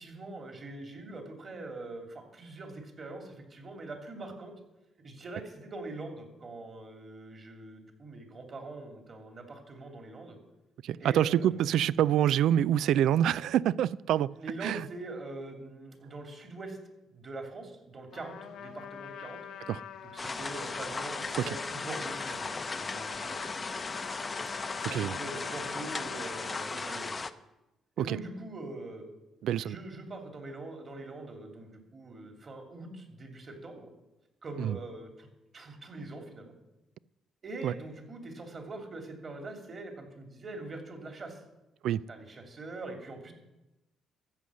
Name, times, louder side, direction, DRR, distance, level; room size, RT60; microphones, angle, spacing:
voice 1, 0.0-4.5 5.0-10.4 11.0-11.6 14.3-16.8 17.1-19.4 20.0-22.5 22.8-23.4 24.8-27.1 28.0-29.1 29.6-33.9 34.4-35.3 35.5-36.5 37.4-41.4 42.1-43.3, right 2 dB, 40° right, 2.9 m, -43 dB
voice 2, 10.8-14.3 14.6-14.8 19.7-19.8 24.9-25.1 28.0-28.2 29.4-29.8 34.6-34.8 37.6-37.7 41.8-42.0, right 11 dB, 80° right, 0.3 m, -26 dB
Trumpet, 18.1-26.7, left 8 dB, 85° left, 1.2 m, -44 dB
sound 1, 20.2-27.3, left 3 dB, 25° left, 0.7 m, -37 dB
14.0 x 7.9 x 6.3 m
cardioid pair, 90°, 0 cm